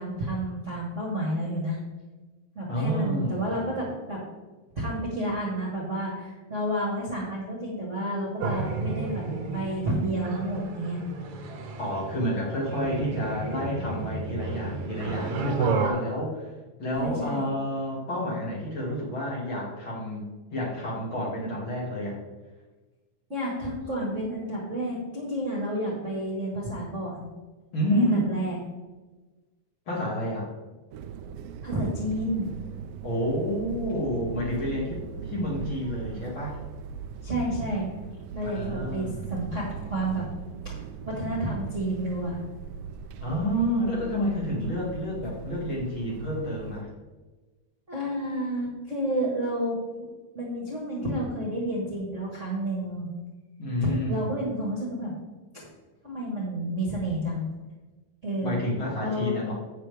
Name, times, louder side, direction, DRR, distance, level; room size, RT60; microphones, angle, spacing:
voice 1, 0.0-1.8 2.5-4.2 4.7-9.2 9.5-11.0 17.0-17.5 23.3-27.3 27.9-28.6 31.6-32.5 37.2-37.9 38.3-40.3 40.6-42.4 47.9-50.1 50.3-53.1 53.8-55.1 56.0-57.5 58.2-58.6 59.0-59.4, right 1 dB, 30° right, -3 dB, 1.5 m, -30 dB
voice 2, 2.7-3.6 11.8-16.5 16.8-20.2 20.5-22.2 27.7-28.2 29.9-30.5 33.0-36.6 38.4-39.3 43.2-46.9 53.6-54.4 58.4-59.5, equal, 45° left, -5 dB, 3.0 m, -29 dB
creepy alien voice, 8.4-15.9, right 4 dB, 60° right, 1.7 m, -31 dB
fighter on leon spain, 30.9-46.8, right 7 dB, 80° right, 1.5 m, -40 dB
10.0 x 8.1 x 3.5 m, 1.2 s
omnidirectional pair, 3.4 m